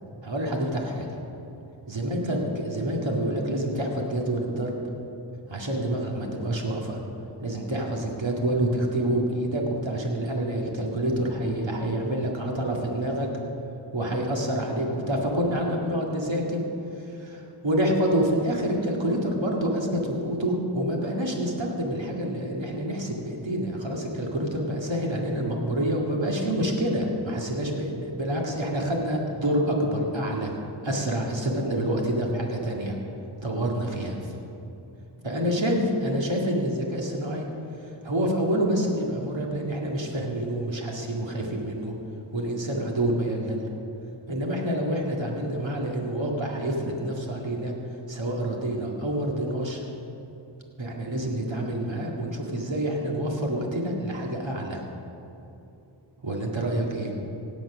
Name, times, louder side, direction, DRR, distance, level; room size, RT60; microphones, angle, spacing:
voice 1, 0.2-1.1 1.9-4.9 5.5-7.0 7.4-13.3 13.9-16.6 16.9-30.5 30.8-33.0 33.4-34.3 35.2-37.5 37.8-41.9 42.3-43.6 44.3-47.7 48.1-49.8 50.8-54.8 56.2-57.2, right 1 dB, 65° right, -1 dB, 2.1 m, -27 dB
17.0 x 9.3 x 6.1 m, 2.9 s
wide cardioid pair, 40°, 48 cm